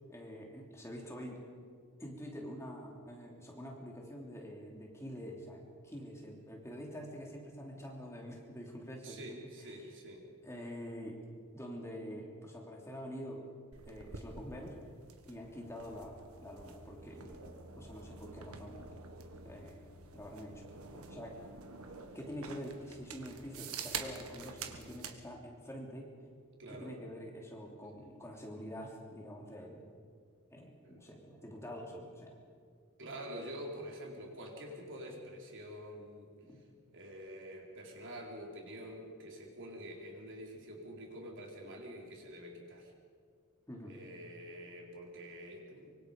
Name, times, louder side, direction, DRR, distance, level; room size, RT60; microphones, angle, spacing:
voice 1, 0.1-1.4 2.0-9.9 10.4-11.2 11.5-13.4 13.9-14.8 15.3-17.4 17.7-18.8 19.4-19.9 20.1-21.3 22.1-26.1 26.7-29.8 30.5-32.4 36.4-36.6 43.7-44.0, equal, 10° left, -1 dB, 3.1 m, -46 dB
voice 2, 9.0-10.3 26.6-26.9 30.8-31.0 33.0-36.3 36.9-42.9 43.8-46.0, equal, 55° right, 0 dB, 4.1 m, -47 dB
sound 1, 13.7-25.2, right 5 dB, 75° right, 1.7 m, -47 dB
24.5 x 24.0 x 5.3 m, 2.1 s
head